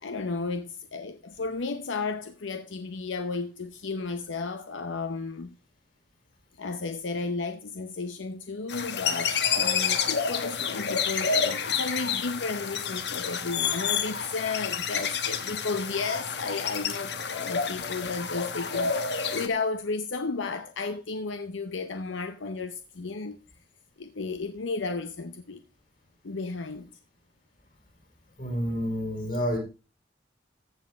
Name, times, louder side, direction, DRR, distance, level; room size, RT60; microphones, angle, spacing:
voice 1, 0.0-5.5 6.6-18.9 19.3-23.4 24.0-25.6 26.2-26.9, left 4 dB, 85° left, 0.7 m, -33 dB
sound 1, 8.7-19.5, left 6 dB, 60° left, 1.1 m, -29 dB
voice 2, 28.4-29.6, equal, 45° left, 4.3 m, -29 dB
14.5 x 7.5 x 3.4 m
head